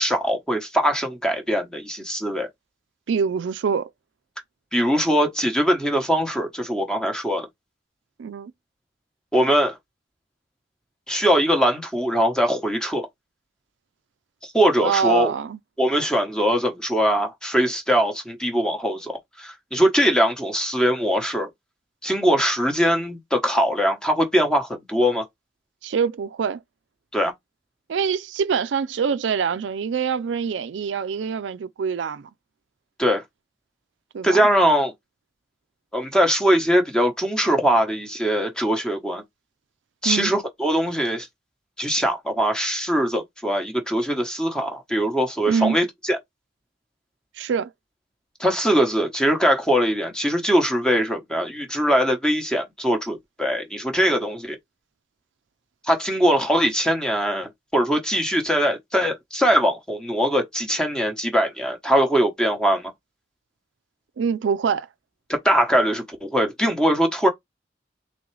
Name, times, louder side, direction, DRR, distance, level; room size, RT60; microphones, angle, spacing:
voice 1, 0.0-2.5 4.7-7.5 9.3-9.8 11.1-13.1 14.4-15.3 15.8-21.5 22.0-25.2 27.1-27.3 33.0-33.2 34.2-34.9 35.9-39.2 40.0-41.3 41.8-46.2 48.4-54.6 55.8-62.9 65.3-67.3, equal, 5° left, 0.9 m, -21 dB
voice 2, 3.1-3.9 8.2-8.5 14.8-15.6 25.8-26.6 27.9-32.3 34.1-34.4 40.0-40.3 45.5-45.8 47.4-47.7 64.2-64.9, right 6 dB, 80° right, 0.4 m, -24 dB
3.8 x 3.3 x 3.1 m
head